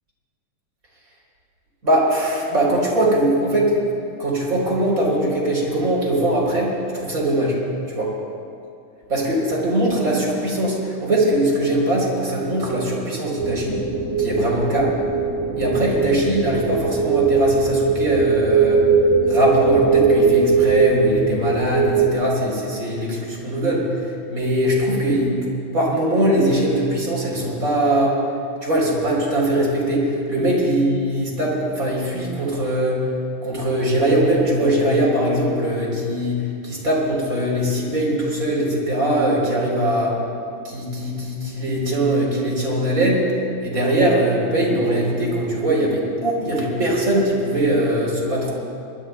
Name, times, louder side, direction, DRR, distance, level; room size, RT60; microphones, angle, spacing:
voice 1, 1.8-3.8 4.2-7.6 7.9-8.1 9.1-13.8 14.2-14.9 15.6-18.9 19.3-24.0 24.3-28.2 28.6-33.0 33.4-40.2 40.6-43.2 43.6-48.6, right 1 dB, 25° right, -3 dB, 3.7 m, -21 dB
sound 1, 13.4-22.1, right 5 dB, 60° right, 0.3 m, -19 dB
23.0 x 21.5 x 2.2 m, 2.4 s
omnidirectional pair, 3.7 m